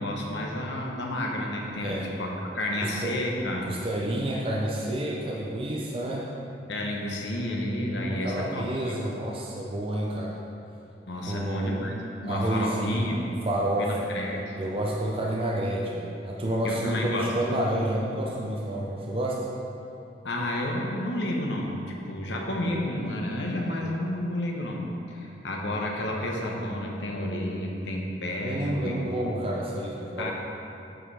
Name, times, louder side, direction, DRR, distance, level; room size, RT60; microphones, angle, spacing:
voice 1, 0.0-3.8 6.7-9.0 11.1-13.3 13.8-14.5 16.6-17.3 20.2-24.8 25.1-29.0 30.2-30.3, left 1 dB, 85° left, -1 dB, 1.1 m, -31 dB
voice 2, 2.8-3.2 3.7-6.3 8.1-10.4 11.3-11.9 12.2-13.1 13.4-14.1 14.6-19.5 28.4-30.3, right 1 dB, 30° right, -3 dB, 0.6 m, -29 dB
8.8 x 5.0 x 4.9 m, 2.8 s
head